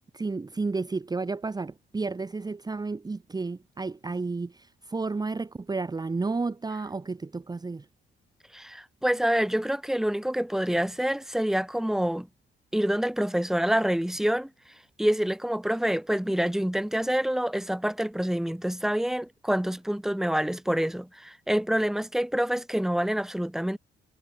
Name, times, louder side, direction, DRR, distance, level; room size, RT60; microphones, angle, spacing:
voice 1, 0.1-7.9, right 3 dB, 20° right, 1.1 m, -32 dB
voice 2, 8.5-12.3 12.7-14.5 15.0-23.8, equal, ahead, 1.6 m, -27 dB
cardioid pair, 90°, 20 cm